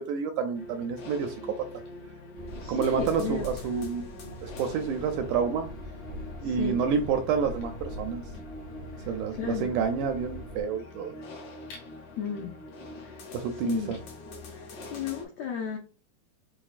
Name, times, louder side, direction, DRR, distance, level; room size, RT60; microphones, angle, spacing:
voice 1, 0.0-1.6 2.7-4.1 4.4-5.7 6.4-8.2 9.1-11.1 13.3-14.0, right 6 dB, 80° right, 1.8 m, -29 dB
sound 1, 0.5-15.3, left 2 dB, 65° left, 2.2 m, -44 dB
sound 2, 2.3-10.6, equal, 50° left, 1.5 m, -42 dB
voice 2, 2.6-3.5 6.4-6.8 9.0-9.7 12.2-12.6 13.0-13.2 13.6-13.9 14.5-15.8, left 7 dB, 85° left, 1.5 m, -34 dB
6.2 x 2.2 x 2.4 m
omnidirectional pair, 3.9 m